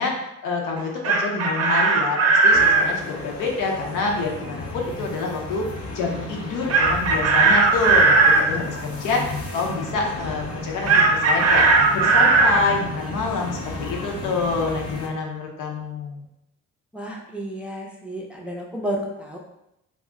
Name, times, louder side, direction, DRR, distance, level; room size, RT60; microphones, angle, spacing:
voice 1, 0.0-5.7 5.9-16.3, left 3 dB, 85° left, 0 dB, 0.7 m, -27 dB
Chicken rooster, 0.8-2.9 6.7-8.4 10.9-12.6, right 3 dB, 55° right, 0.5 m, -17 dB
sound 1, 2.5-15.1, left 2 dB, 50° left, 0.6 m, -34 dB
voice 2, 16.9-19.4, right 1 dB, 5° right, -2 dB, 0.4 m, -31 dB
2.4 x 2.1 x 3.6 m, 0.86 s
cardioid pair, 90°, 30 cm